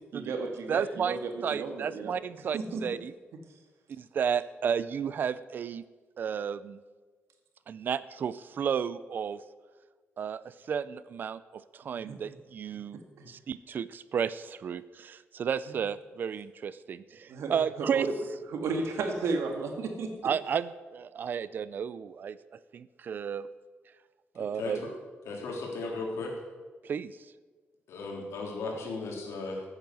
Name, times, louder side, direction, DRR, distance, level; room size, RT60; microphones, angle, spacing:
voice 1, 0.1-2.1 2.5-2.8 12.0-12.2 13.2-13.3 17.3-18.1 18.5-20.1, right 4 dB, 85° right, 4 dB, 2.1 m, -33 dB
voice 2, 0.7-3.1 3.9-5.8 6.2-6.8 7.7-9.4 10.2-13.0 13.3-18.1 20.2-22.4 22.7-23.5 24.4-24.9 26.8-27.2, right 7 dB, 45° right, 16 dB, 0.5 m, -33 dB
voice 3, 25.3-26.3 27.9-29.6, left 3 dB, 85° left, 0 dB, 3.7 m, -36 dB
14.0 x 8.8 x 7.8 m, 1.4 s
wide cardioid pair, 175°, 4 cm